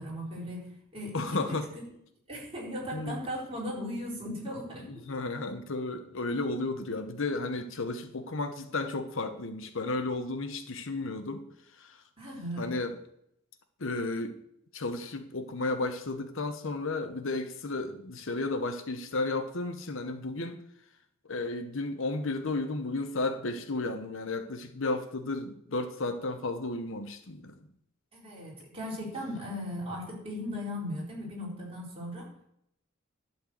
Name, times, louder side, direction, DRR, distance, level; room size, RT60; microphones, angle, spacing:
voice 1, 0.0-1.8 2.3-5.1 12.2-12.7 28.1-32.3, equal, 30° right, -5 dB, 4.2 m, -37 dB
voice 2, 1.1-1.7 2.9-3.2 4.9-11.4 11.8-12.0 12.6-13.0 13.8-14.4 14.7-20.6 21.3-27.5, left 2 dB, 65° left, 8 dB, 0.9 m, -33 dB
11.5 x 4.4 x 7.6 m, 0.74 s
head